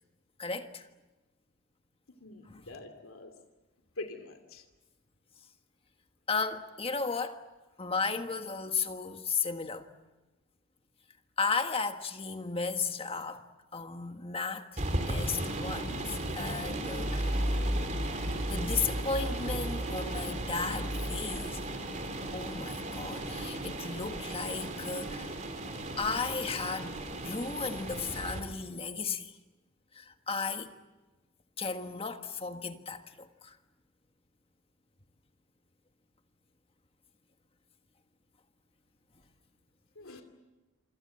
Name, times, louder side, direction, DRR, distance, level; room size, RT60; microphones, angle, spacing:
voice 1, 0.4-0.9 2.5-2.6 6.3-7.4 7.8-9.9 11.4-13.4 13.7-14.8 15.1-17.6 18.5-21.6 22.3-25.3 26.0-26.9 27.2-29.3 29.9-30.7 31.6-33.6, left 4 dB, 25° left, 1.5 m, -34 dB
voice 2, 2.1-3.3 4.0-4.6 40.0-40.2, left 2 dB, 70° left, 2.7 m, -44 dB
sound 1, 14.8-28.4, right 1 dB, 35° right, 3.5 m, -34 dB
27.0 x 26.0 x 7.8 m
head